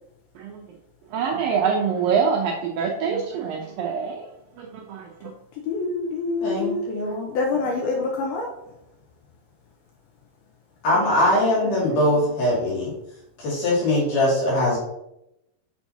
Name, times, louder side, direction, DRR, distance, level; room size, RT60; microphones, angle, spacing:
voice 1, 1.1-4.3 4.6-5.3, right 6 dB, 80° right, -1 dB, 2.1 m, -25 dB
voice 2, 5.6-6.9 7.3-8.5 10.9-11.4 11.6-12.3, left 3 dB, 80° left, 1 dB, 2.3 m, -27 dB
voice 3, 6.4-7.3 10.8-12.9 13.4-14.8, left 1 dB, 55° left, -5 dB, 3.8 m, -21 dB
7.2 x 6.4 x 2.8 m, 0.83 s
omnidirectional pair, 4.7 m